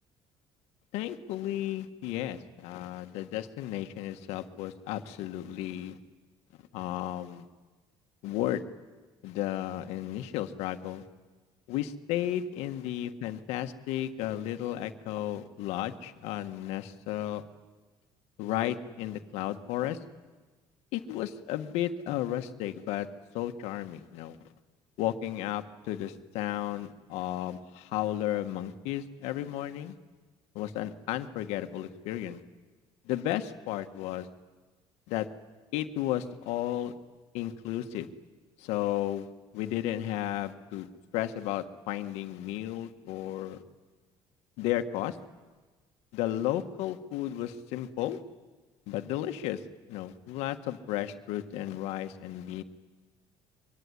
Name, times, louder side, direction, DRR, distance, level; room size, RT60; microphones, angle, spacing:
voice 1, 0.9-6.0 6.7-7.4 8.2-8.6 9.2-11.0 11.7-17.4 18.4-20.0 20.9-23.1 23.3-24.4 25.0-29.9 30.5-32.4 33.0-34.3 35.1-35.3 35.7-36.9 37.3-38.1 38.6-39.3 39.5-40.9 41.1-43.6 44.6-45.2 46.1-48.2 48.9-49.6 49.9-52.6, left 12 dB, 85° left, 8 dB, 1.6 m, -33 dB
24.0 x 23.5 x 9.8 m, 1.3 s
cardioid pair, 160°, 11 cm